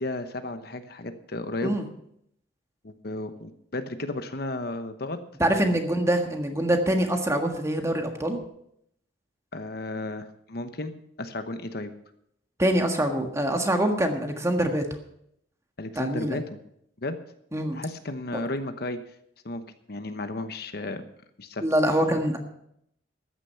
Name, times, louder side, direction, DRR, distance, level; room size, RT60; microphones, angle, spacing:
voice 1, 0.0-1.8 2.8-5.2 5.5-5.7 9.5-10.9 11.2-11.9 15.8-16.6 17.0-17.2 17.7-19.0 19.4-19.6 19.9-21.0 21.4-21.6, left 2 dB, 55° left, 9 dB, 1.0 m, -33 dB
voice 2, 5.4-8.4 12.6-14.8 15.9-16.4 17.5-17.8 21.6-22.4, right 1 dB, 15° right, 4 dB, 1.6 m, -24 dB
14.0 x 9.8 x 5.7 m, 0.73 s
head